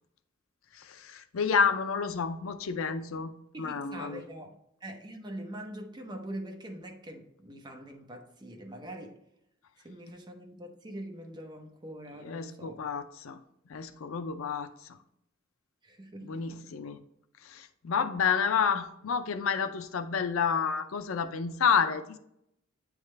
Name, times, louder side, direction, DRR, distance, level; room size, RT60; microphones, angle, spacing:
voice 1, 0.7-3.3 3.6-4.2 12.2-13.4 13.7-14.7 16.2-17.0 17.4-22.2, left 6 dB, 85° left, 0.5 m, -30 dB
voice 2, 3.5-9.2 9.8-12.8 15.8-16.6, right 1 dB, 20° right, 0.7 m, -43 dB
8.9 x 3.6 x 3.2 m
head